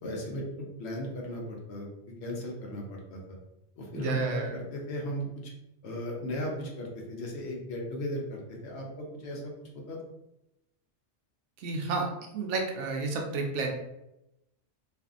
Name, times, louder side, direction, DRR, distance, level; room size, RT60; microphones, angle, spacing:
voice 1, 0.0-3.2 3.8-5.3 5.8-10.0, equal, 65° left, 0 dB, 0.8 m, -36 dB
voice 2, 3.9-4.6 11.6-12.1 12.3-13.7, right 3 dB, 75° right, 1 dB, 0.9 m, -31 dB
2.5 x 2.5 x 2.4 m, 0.88 s
omnidirectional pair, 1.2 m